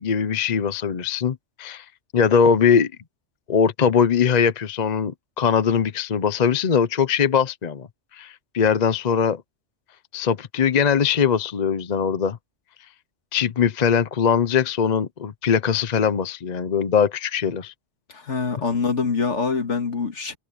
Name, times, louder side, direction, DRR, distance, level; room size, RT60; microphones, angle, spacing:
voice 1, 0.0-1.8 2.1-2.9 3.5-7.9 8.1-9.4 10.1-12.4 13.3-17.7, left 7 dB, 40° left, 0.8 m, -21 dB
voice 2, 18.1-20.4, left 4 dB, 85° left, 2.2 m, -25 dB
omnidirectional pair, 1.2 m